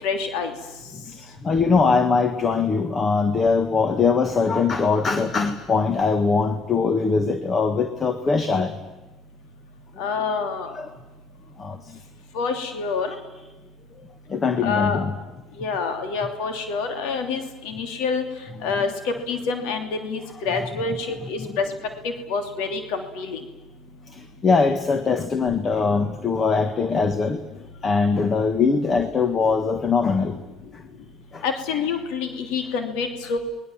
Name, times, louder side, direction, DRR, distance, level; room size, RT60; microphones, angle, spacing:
voice 1, 0.0-0.5 10.0-10.8 12.3-13.2 14.6-15.0 15.6-18.2 18.6-21.6 22.0-23.4 31.4-33.4, left 5 dB, 85° left, 7 dB, 2.8 m, -27 dB
voice 2, 1.4-8.7 10.7-10.9 11.6-12.0 13.1-13.2 14.3-15.1 20.6-20.7 21.4-21.6 24.1-27.4 27.8-30.4 31.3-31.4, left 4 dB, 30° left, 10 dB, 1.5 m, -22 dB
30.0 x 20.5 x 7.4 m, 1.0 s
cardioid pair, 125°, 0 cm